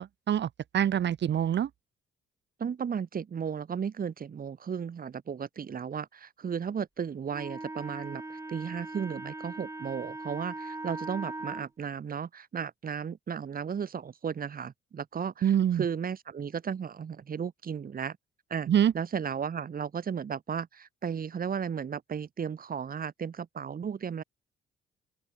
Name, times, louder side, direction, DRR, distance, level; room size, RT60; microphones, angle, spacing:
voice 1, 0.0-1.7 15.4-15.8 18.7-18.9, right 10 dB, 60° right, 3.0 m, -25 dB
voice 2, 2.6-18.2 18.5-18.7 18.9-24.2, right 7 dB, 45° right, 3.7 m, -35 dB
Wind instrument woodwind instrument, 7.3-11.7, right 2 dB, 15° right, 3.5 m, -40 dB
open air
cardioid pair, 90°, 20 cm